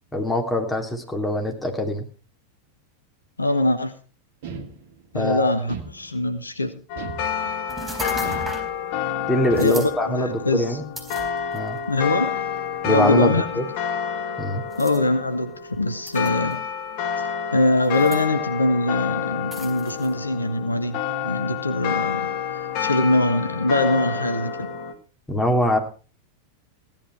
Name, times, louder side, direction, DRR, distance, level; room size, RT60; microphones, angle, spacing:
voice 1, 0.1-2.0 5.1-5.5 9.3-10.8 11.5-11.8 12.8-13.6 14.4-14.6 25.3-25.8, left 1 dB, 10° left, 2 dB, 3.2 m, -23 dB
voice 2, 3.4-3.9 5.1-6.7 9.6-10.8 11.9-12.3 12.8-13.6 14.8-16.6 17.2-24.7, left 2 dB, 80° left, 9 dB, 1.3 m, -23 dB
sound 1, 4.4-5.2 5.7-6.4 7.0-7.7 8.2-9.0 9.5-10.1, right 4 dB, 50° right, 1.9 m, -38 dB
sound 2, 6.9-24.9, left 8 dB, 45° left, 1.8 m, -29 dB
sound 3, 7.7-8.7 9.5-9.9 11.0-11.8 12.6-12.7 14.7-15.0 16.1-16.5 17.8-18.2 19.5-20.1, right 2 dB, 10° right, 4.6 m, -35 dB
16.5 x 10.5 x 4.7 m, 0.36 s
figure-of-eight pair, 90°, 0 cm